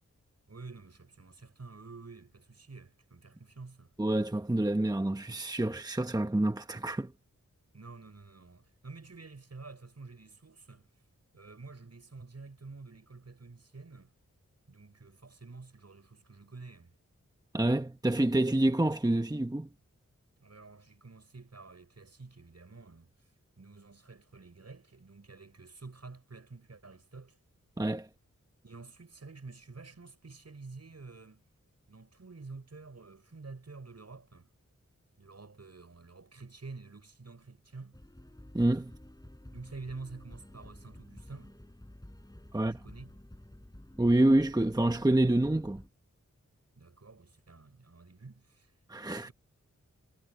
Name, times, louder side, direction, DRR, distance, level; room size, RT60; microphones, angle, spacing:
voice 1, 0.5-3.9 7.7-10.9 11.3-14.1 14.7-17.0 20.4-23.1 23.6-27.4 28.6-31.4 31.9-34.5 35.2-38.0 39.5-41.6 42.6-43.2 46.8-48.7 49.2-49.3, right 3 dB, 55° right, 7.1 m, -49 dB
voice 2, 4.0-7.1 17.5-19.7 27.8-28.1 38.5-38.9 42.5-42.8 44.0-45.8 48.9-49.3, right 1 dB, 15° right, 1.0 m, -27 dB
sound 1, 37.9-45.9, left 1 dB, 15° left, 5.3 m, -51 dB
wide cardioid pair, 65°, 30 cm